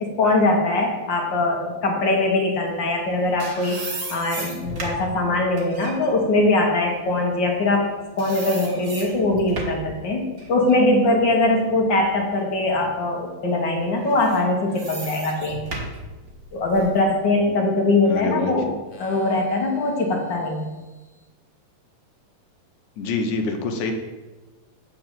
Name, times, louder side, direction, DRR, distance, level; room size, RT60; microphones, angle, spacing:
voice 1, 0.0-3.8 4.1-7.8 8.2-15.6 16.5-20.7, left 2 dB, 45° left, 1 dB, 1.6 m, -21 dB
sound 1, 3.0-7.9 8.2-9.9 10.4-12.3 12.8-12.9 14.0-17.0, right 2 dB, 40° right, 1.3 m, -36 dB
voice 2, 18.1-18.5 23.0-23.9, left 3 dB, 75° left, 4 dB, 2.2 m, -25 dB
8.6 x 4.8 x 7.5 m, 1.2 s
omnidirectional pair, 3.8 m